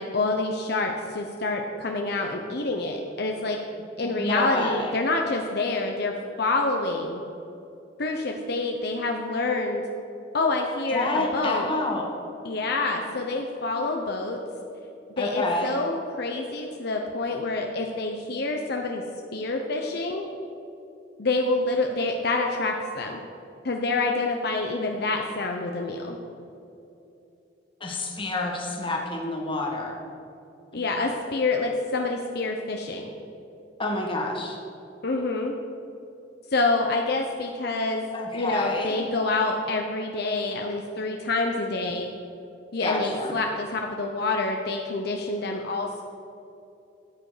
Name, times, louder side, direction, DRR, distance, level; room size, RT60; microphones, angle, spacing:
voice 1, 0.0-3.6 4.0-7.2 8.0-9.8 10.3-11.7 12.4-14.4 15.2-19.0 19.3-20.3 21.2-23.2 23.6-26.2 30.7-33.1 35.0-35.6 36.5-38.1 38.3-42.1 42.7-46.0, left 3 dB, 60° left, 2 dB, 0.8 m, -27 dB
voice 2, 4.0-4.9 10.9-12.1 15.2-15.7 27.8-30.0 30.7-30.8 33.8-34.6 38.1-39.0 42.8-43.3, left 2 dB, 30° left, 0 dB, 1.7 m, -28 dB
13.5 x 8.7 x 5.0 m, 2.8 s
head